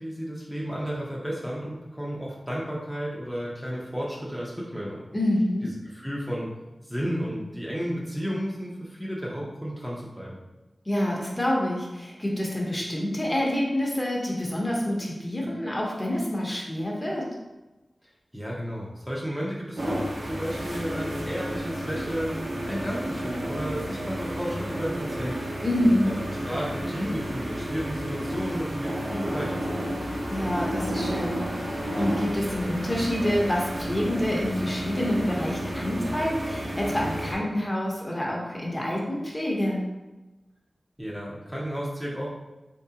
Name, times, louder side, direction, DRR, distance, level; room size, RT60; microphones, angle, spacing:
voice 1, 0.0-5.0 5.6-6.5 6.8-10.4 18.3-22.4 22.7-25.4 26.0-26.1 26.5-29.9 41.0-42.3, equal, 10° right, -5 dB, 0.7 m, -33 dB
voice 2, 5.1-5.7 10.8-17.3 25.6-26.1 30.3-39.8, left 1 dB, 25° left, -3 dB, 1.0 m, -27 dB
sound 1, 19.8-37.3, equal, 75° right, 1.0 m, -32 dB
3.7 x 3.2 x 2.8 m, 1.1 s
wide cardioid pair, 55°, 0 cm